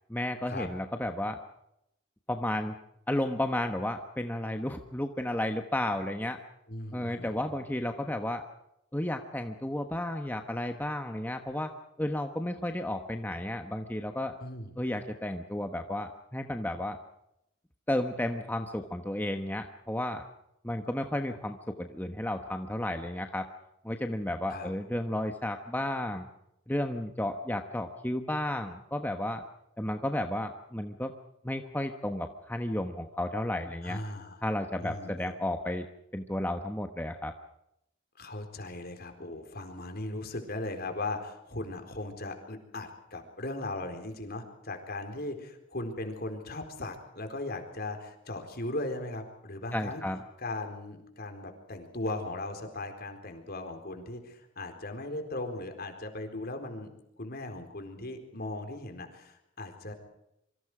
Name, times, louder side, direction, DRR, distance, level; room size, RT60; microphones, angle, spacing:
voice 1, 0.1-1.4 2.3-2.7 3.1-6.4 6.9-8.4 8.9-11.7 12.0-14.4 14.8-17.0 17.9-20.2 20.6-23.5 23.8-26.3 26.7-29.4 29.8-31.1 31.4-34.0 34.4-35.9 36.1-37.3 49.7-50.2, left 1 dB, 10° left, 5 dB, 1.2 m, -32 dB
voice 2, 6.7-7.6 14.4-14.7 24.5-24.7 33.8-34.4 34.8-35.3 38.2-50.0 50.4-56.9 57.2-59.9, left 2 dB, 50° left, 6 dB, 4.2 m, -38 dB
27.0 x 25.0 x 5.0 m, 0.82 s
head